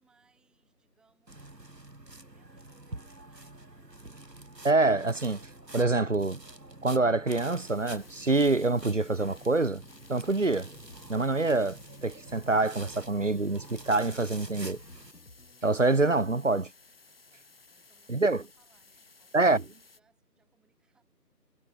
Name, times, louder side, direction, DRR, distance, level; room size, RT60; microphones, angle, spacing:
voice 1, 0.0-4.0 17.0-21.0, right 5 dB, ahead, 5.0 m, -71 dB
sound 1, 1.3-15.1, right 2 dB, 75° right, 5.2 m, -47 dB
voice 2, 4.6-5.5 5.7-6.4 6.8-9.8 10.1-10.7 11.1-11.8 12.0-14.8 15.6-16.7 18.1-18.4 19.3-19.6, right 3 dB, 50° right, 0.8 m, -26 dB
sound 2, 7.4-16.4, left 2 dB, 70° left, 5.7 m, -57 dB
sound 3, 7.5-20.0, left 4 dB, 35° left, 5.7 m, -58 dB
figure-of-eight pair, 165°, 49 cm